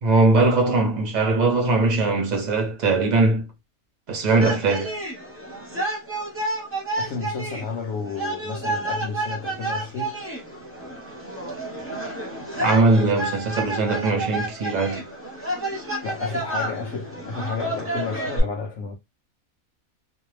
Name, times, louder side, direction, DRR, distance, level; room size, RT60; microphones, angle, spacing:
voice 1, 0.0-3.5 4.1-5.0 12.6-15.0, right 3 dB, 55° right, 0.5 m, -20 dB
sound 1, 4.4-18.4, right 2 dB, 15° right, 0.7 m, -30 dB
voice 2, 7.0-10.2 16.0-19.0, left 4 dB, 65° left, 0.7 m, -31 dB
2.4 x 2.1 x 3.1 m
omnidirectional pair, 1.5 m